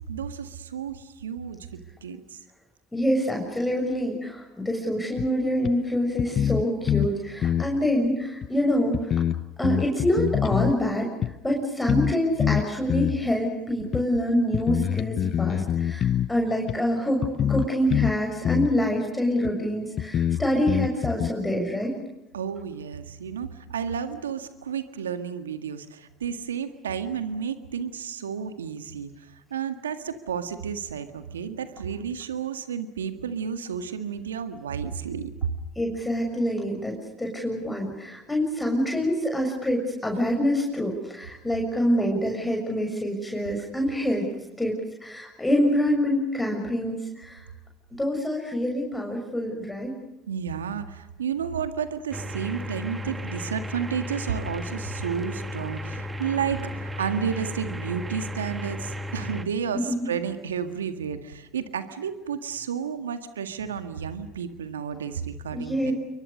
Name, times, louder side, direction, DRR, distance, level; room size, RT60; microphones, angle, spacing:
voice 1, 0.1-2.4 22.3-35.3 50.3-65.9, right 7 dB, 90° right, 9 dB, 1.8 m, -32 dB
voice 2, 2.9-9.1 9.6-11.1 11.4-21.9 35.8-44.3 44.6-47.4 48.0-49.9 59.7-59.9 65.5-65.9, equal, 10° left, 1 dB, 6.9 m, -26 dB
sound 1, 5.2-5.3 5.6-5.7 6.2-7.1 7.4-7.7 8.4-8.5 8.9-10.8 11.2-11.3 11.9-12.1 12.4-13.2 13.9-14.0 14.5-16.3 16.7-16.8 17.2-18.2 18.4-18.7 19.4-19.5 20.0-21.3, left 9 dB, 50° left, 1.0 m, -25 dB
sound 2, 52.1-59.4, left 1 dB, 20° right, 2.3 m, -34 dB
29.5 x 23.5 x 6.6 m, 0.99 s
hypercardioid pair, 70°, 0 cm